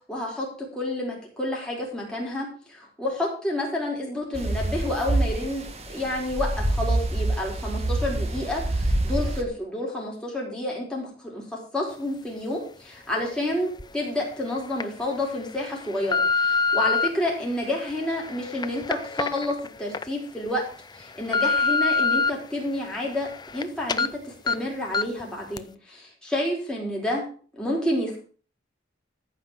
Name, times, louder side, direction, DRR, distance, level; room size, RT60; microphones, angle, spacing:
voice 1, 0.1-11.4 11.7-20.6 20.9-27.2 27.5-28.2, left 1 dB, 5° left, -3 dB, 4.9 m, -29 dB
sound 1, 4.3-9.4, right 1 dB, 35° right, 1.7 m, -26 dB
sound 2, 13.8-13.9 14.5-14.8 15.5-17.1 17.7-20.0 20.5-20.6 21.0-22.3 22.7-23.6 23.9-24.1 24.5-24.6 24.9-25.2 25.6-25.7, left 4 dB, 20° left, 0.6 m, -25 dB
14.0 x 5.6 x 7.5 m, 0.42 s
head